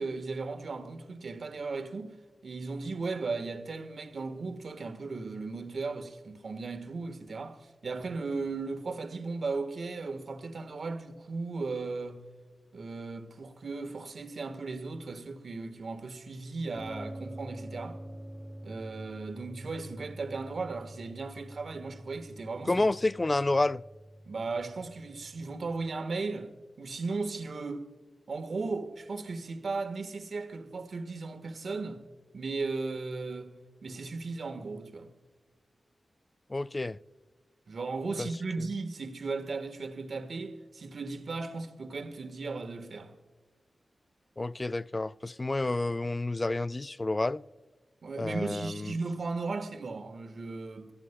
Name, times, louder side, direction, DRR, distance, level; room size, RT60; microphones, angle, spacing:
voice 1, 0.0-2.2 2.4-12.2 12.7-18.0 18.6-22.8 24.2-26.5 26.8-27.9 28.3-32.0 32.3-33.6 33.8-35.1 37.7-43.1 48.0-50.9, right 3 dB, 70° right, 1.4 m, -36 dB
sound 1, 16.8-25.9, right 1 dB, ahead, 3.1 m, -46 dB
voice 2, 22.7-23.8 36.5-37.0 38.2-38.3 44.4-47.4 48.2-48.9, left 2 dB, 35° left, 0.4 m, -29 dB
25.5 x 14.5 x 2.2 m
cardioid pair, 40°, 0 cm